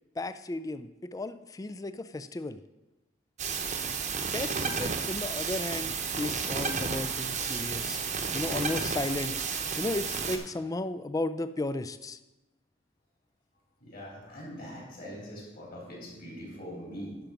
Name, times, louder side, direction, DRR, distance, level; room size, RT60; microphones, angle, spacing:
voice 1, 0.2-2.6 4.3-8.0 8.3-9.4 9.8-12.2, left 2 dB, 15° left, 12 dB, 0.3 m, -34 dB
sound 1, 3.4-10.4, right 5 dB, 35° right, 0.9 m, -32 dB
voice 2, 13.8-17.2, equal, 45° left, -4 dB, 3.7 m, -42 dB
10.5 x 5.9 x 5.2 m, 1.1 s
head